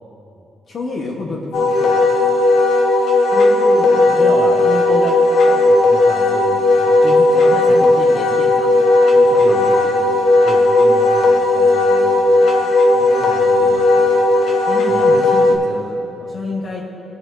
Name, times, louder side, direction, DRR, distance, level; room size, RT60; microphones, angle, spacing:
voice 1, 0.7-2.2 6.8-8.8 9.1-10.2 12.9-14.1 14.7-16.8, left 3 dB, 55° left, -3 dB, 1.1 m, -30 dB
Wind instrument woodwind instrument, 1.5-15.6, left 2 dB, 75° left, 1.2 m, -14 dB
voice 2, 3.3-6.6 7.5-7.8 9.4-9.7 10.4-12.7 14.9-15.0, equal, 15° left, -4 dB, 2.2 m, -29 dB
19.5 x 7.0 x 2.7 m, 2.9 s
cardioid pair, 90°, 0 cm